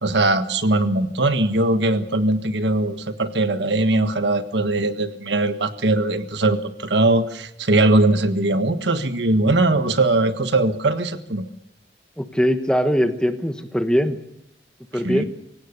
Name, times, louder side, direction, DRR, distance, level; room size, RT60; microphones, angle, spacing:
voice 1, 0.0-11.5 15.0-15.2, right 2 dB, 70° right, 9 dB, 1.5 m, -20 dB
voice 2, 12.2-14.2 14.9-15.2, equal, 5° left, 7 dB, 1.3 m, -21 dB
25.5 x 17.0 x 6.8 m, 0.79 s
head